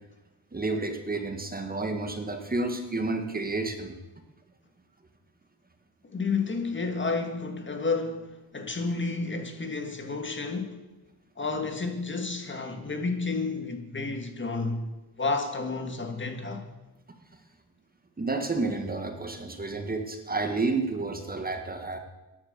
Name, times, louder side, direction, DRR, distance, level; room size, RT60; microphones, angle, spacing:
voice 1, 0.5-4.0 18.2-22.0, right 3 dB, 20° right, 1.6 m, -30 dB
voice 2, 6.1-10.8 11.4-14.8 15.2-16.6, left 3 dB, 25° left, 1.8 m, -31 dB
14.5 x 10.5 x 6.7 m
cardioid pair, 120°, 42 cm